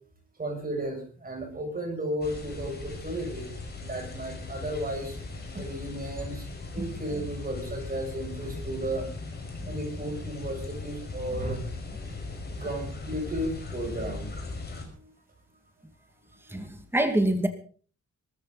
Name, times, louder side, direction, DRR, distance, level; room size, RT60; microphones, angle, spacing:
voice 1, 0.4-3.5 3.8-5.2 5.5-6.4 6.7-9.1 9.6-11.7 12.6-14.3 15.0-15.1 16.5-16.6, right 1 dB, 30° right, 2 dB, 7.9 m, -34 dB
sound 1, 2.2-14.9, left 3 dB, 35° left, 5.3 m, -38 dB
voice 2, 16.5-17.5, right 1 dB, 10° right, 6 dB, 2.3 m, -26 dB
22.0 x 14.0 x 4.1 m, 0.43 s
wide cardioid pair, 135°, 29 cm